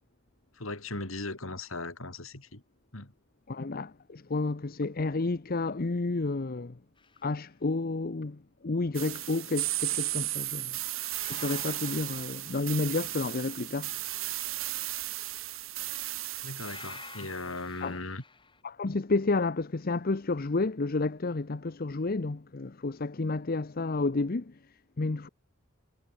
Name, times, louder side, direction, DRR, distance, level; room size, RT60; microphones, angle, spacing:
voice 1, 0.5-2.6 2.9-3.1 16.4-18.2, left 2 dB, 85° left, 4.4 m, -38 dB
voice 2, 3.5-6.8 7.2-14.2 17.8-18.0 18.6-24.5 25.0-25.3, left 3 dB, 45° left, 0.7 m, -31 dB
sound 1, 7.0-7.3 11.1-13.3 16.5-18.6, left 4 dB, 25° left, 5.5 m, -49 dB
sound 2, 8.9-17.4, right 16 dB, 85° right, 2.7 m, -35 dB
head